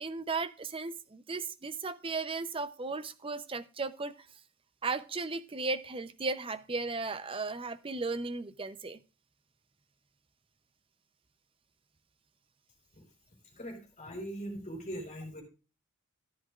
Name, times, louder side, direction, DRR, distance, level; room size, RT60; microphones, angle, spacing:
voice 1, 0.0-4.1 4.8-9.0, right 3 dB, 25° right, 12 dB, 0.7 m, -35 dB
voice 2, 13.5-15.4, right 1 dB, 35° left, 2 dB, 4.3 m, -41 dB
14.0 x 10.0 x 2.4 m, 0.32 s
head